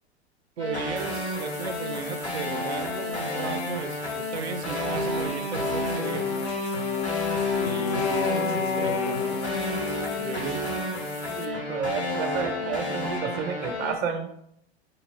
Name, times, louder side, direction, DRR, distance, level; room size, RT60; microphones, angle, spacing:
sound 1, 0.6-13.9, left 1 dB, 85° left, 1.2 m, -31 dB
voice 1, 0.6-6.5 7.5-9.6 10.2-10.7, right 6 dB, 80° right, 9 dB, 0.5 m, -36 dB
sound 2, 1.0-11.5, left 5 dB, 70° left, 0.7 m, -44 dB
Wind instrument woodwind instrument, 6.0-11.0, left 8 dB, 35° left, 0.4 m, -30 dB
voice 2, 11.3-14.3, right 6 dB, 30° right, 5 dB, 0.6 m, -31 dB
2.9 x 2.9 x 4.1 m, 0.73 s
figure-of-eight pair, 90°, 32 cm